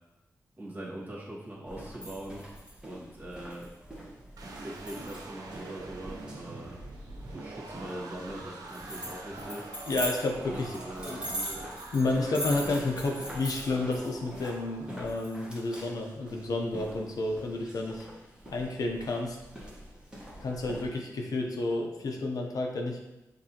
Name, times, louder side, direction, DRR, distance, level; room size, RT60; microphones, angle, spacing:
voice 1, 0.6-2.5 2.8-3.7 4.1-4.2 4.6-6.8 7.1-9.7 10.5-11.7, right 1 dB, 30° right, -6 dB, 1.4 m, -42 dB
sound 1, 1.7-20.9, right 1 dB, 15° right, 1.2 m, -42 dB
sound 2, 4.4-16.4, right 2 dB, 80° right, 0.6 m, -46 dB
voice 2, 9.9-11.3 11.9-18.1 18.5-19.4 20.4-23.0, left 2 dB, 80° left, 1 dB, 0.6 m, -31 dB
6.3 x 2.6 x 2.8 m, 0.96 s
wide cardioid pair, 80°, 6 cm